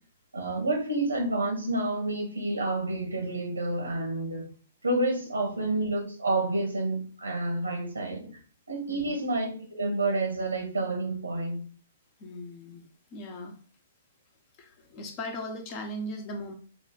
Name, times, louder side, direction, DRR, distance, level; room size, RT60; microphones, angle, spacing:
voice 1, 0.3-4.5 4.8-8.3 8.7-11.6, right 2 dB, 85° right, 1.4 m, -29 dB
voice 2, 8.9-9.3 12.2-13.5 14.6-16.5, left 1 dB, 35° left, 1.0 m, -39 dB
5.2 x 2.4 x 3.8 m
figure-of-eight pair, 120°, 0 cm